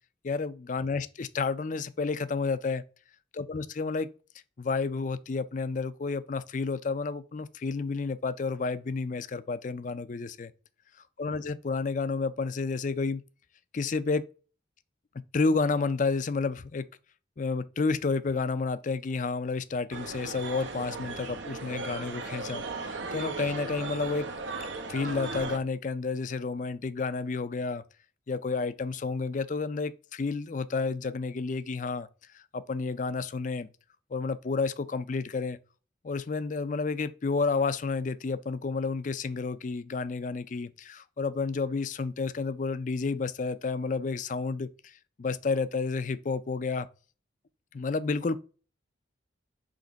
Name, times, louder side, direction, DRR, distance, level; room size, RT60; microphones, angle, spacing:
voice 1, 0.2-2.8 3.3-4.1 4.6-10.5 11.2-13.2 13.7-14.3 15.3-16.9 17.4-24.3 24.9-27.8 28.3-32.1 32.3-33.7 34.1-35.6 36.0-44.9 45.2-46.9 47.7-48.4, left 4 dB, 45° left, 0.4 m, -30 dB
sound 1, 19.9-25.6, right 3 dB, 85° right, 0.9 m, -37 dB
5.1 x 3.7 x 5.1 m
head